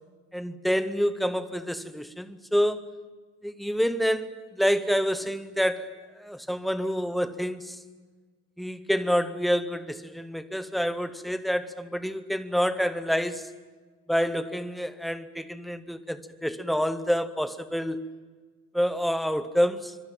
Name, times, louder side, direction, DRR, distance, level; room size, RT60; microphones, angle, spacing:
voice 1, 0.3-2.9 3.4-7.8 8.6-13.5 14.1-18.0 18.7-20.0, equal, ahead, 0.8 m, -28 dB
25.0 x 23.0 x 9.0 m
cardioid pair, 175°, 31 cm